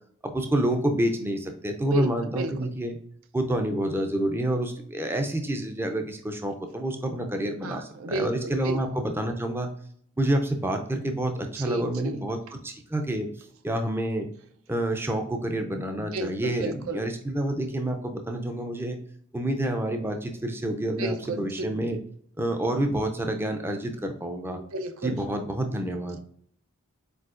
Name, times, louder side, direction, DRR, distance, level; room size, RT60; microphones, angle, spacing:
voice 1, 0.2-3.0 3.3-9.7 10.2-13.3 13.6-14.3 14.7-19.0 19.3-22.0 22.4-24.6 25.0-26.2, right 1 dB, 10° right, 5 dB, 0.4 m, -28 dB
voice 2, 1.9-2.5 7.6-8.8 11.6-12.2 16.0-17.0 21.0-21.6 24.7-25.2, right 2 dB, 70° right, 7 dB, 0.5 m, -32 dB
4.6 x 4.1 x 2.5 m, 0.62 s
head